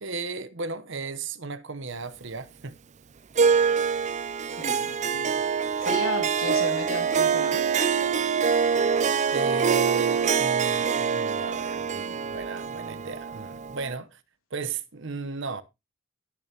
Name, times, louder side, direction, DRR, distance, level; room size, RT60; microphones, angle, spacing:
voice 1, 0.0-2.8 9.3-14.2 14.5-15.6, right 4 dB, 60° right, 1.0 m, -35 dB
Harp, 3.4-13.9, right 6 dB, 35° right, 0.5 m, -25 dB
voice 2, 4.5-5.4 5.8-7.7, left 2 dB, 85° left, 2.6 m, -35 dB
18.5 x 6.8 x 2.9 m
head